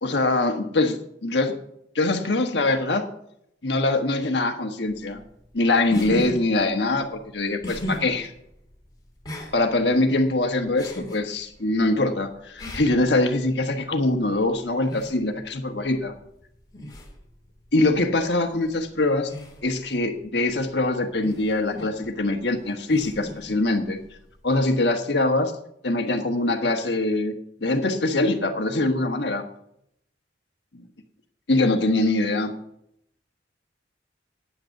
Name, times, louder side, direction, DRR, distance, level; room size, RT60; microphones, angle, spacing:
voice 1, 0.0-1.6 1.9-3.0 3.6-5.2 5.5-8.3 9.5-16.1 17.7-19.3 19.6-24.0 24.4-25.5 25.8-27.3 27.6-29.5 30.7-30.8 31.5-32.5, left 2 dB, 70° left, 5 dB, 1.4 m, -23 dB
sound 1, 4.9-24.6, equal, 25° left, 2.4 m, -40 dB
9.7 x 9.2 x 6.6 m, 0.74 s
head